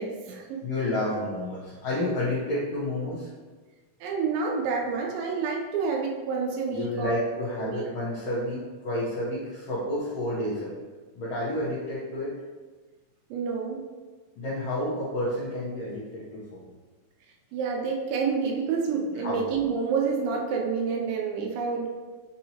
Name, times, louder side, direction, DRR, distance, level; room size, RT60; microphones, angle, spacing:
voice 1, 0.0-0.7 4.0-7.2 7.6-7.9 13.3-13.9 17.5-21.9, right 5 dB, 90° right, 0 dB, 2.3 m, -28 dB
voice 2, 0.6-3.3 6.7-10.7 11.1-12.3 14.4-16.7 19.1-19.5, left 1 dB, 70° left, -9 dB, 1.5 m, -30 dB
5.6 x 2.7 x 2.8 m, 1.3 s
omnidirectional pair, 3.9 m